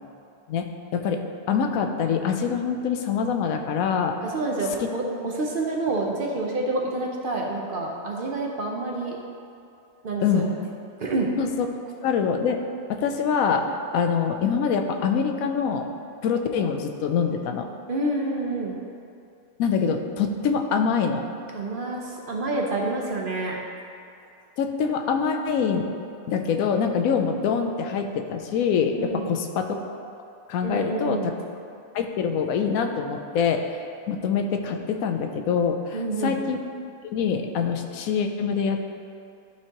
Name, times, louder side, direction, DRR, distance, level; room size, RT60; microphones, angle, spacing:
voice 1, 0.9-4.2 4.8-4.9 10.2-10.5 11.4-11.7 12.0-12.6 12.9-13.7 13.9-15.9 16.2-17.7 19.6-21.2 24.6-25.9 26.3-29.9 30.5-31.3 31.9-33.7 34.1-36.6 37.1-38.8, left 6 dB, 85° left, 5 dB, 1.0 m, -24 dB
voice 2, 4.2-9.2 10.0-10.5 11.0-11.3 17.9-18.8 21.5-23.6 29.0-29.3 30.6-31.3 35.9-36.4, right 2 dB, 50° right, -1 dB, 0.7 m, -28 dB
11.5 x 4.5 x 2.9 m, 2.5 s
omnidirectional pair, 1.5 m